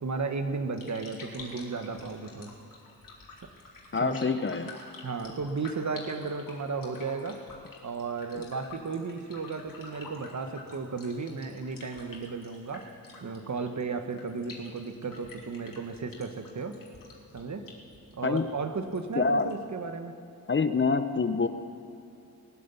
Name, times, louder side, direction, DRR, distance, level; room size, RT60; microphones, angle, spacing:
voice 1, 0.0-2.5 4.0-4.3 5.0-7.4 7.8-12.9 13.2-16.8 17.3-17.6 18.1-20.1, right 4 dB, 50° right, 7 dB, 1.3 m, -34 dB
sound 1, 0.7-19.7, left 3 dB, 60° left, 3.0 m, -49 dB
voice 2, 3.9-4.7 18.2-18.5 19.2-19.5 20.5-21.5, left 4 dB, 30° left, 11 dB, 0.7 m, -26 dB
21.0 x 7.8 x 7.0 m, 2.8 s
cardioid pair, 55°, 37 cm